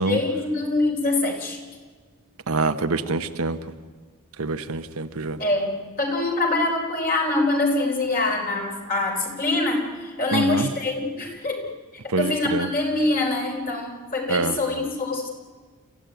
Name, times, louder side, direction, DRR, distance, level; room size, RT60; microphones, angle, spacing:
voice 1, 0.0-1.6 5.4-11.7 12.0-15.3, left 2 dB, 40° left, 1 dB, 4.4 m, -24 dB
voice 2, 2.5-3.6 4.4-5.4 10.3-10.7 12.1-12.7 14.3-14.6, right 3 dB, 70° right, 9 dB, 1.2 m, -25 dB
28.5 x 14.5 x 9.3 m, 1.5 s
head